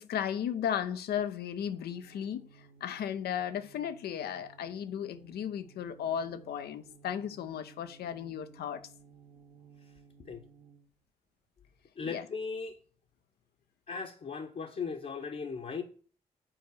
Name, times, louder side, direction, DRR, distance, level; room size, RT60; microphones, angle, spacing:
voice 1, 0.0-8.8 12.1-12.2, left 9 dB, 70° left, 0.8 m, -35 dB
sound 1, 1.6-11.0, right 5 dB, 60° right, 1.3 m, -58 dB
voice 2, 12.0-12.8 13.9-15.8, left 5 dB, 50° left, 1.1 m, -38 dB
7.8 x 4.4 x 6.4 m
hypercardioid pair, 40°, 17 cm